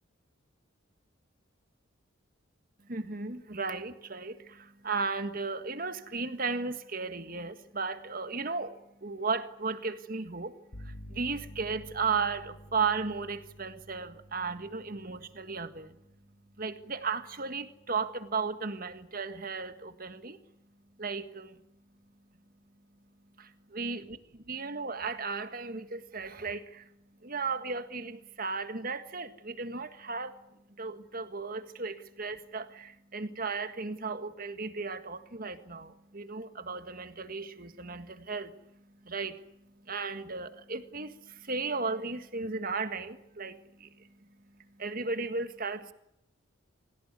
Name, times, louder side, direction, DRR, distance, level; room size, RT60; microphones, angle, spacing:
voice 1, 2.9-15.9 16.6-20.4 21.0-21.6 23.4-24.0 24.5-26.9 27.2-30.4 30.8-38.6 39.0-39.4 39.9-44.1 44.8-45.9, right 4 dB, 45° right, 1.7 m, -35 dB
sound 1, 10.7-18.4, equal, 60° left, 2.4 m, -51 dB
26.5 x 17.0 x 9.7 m
head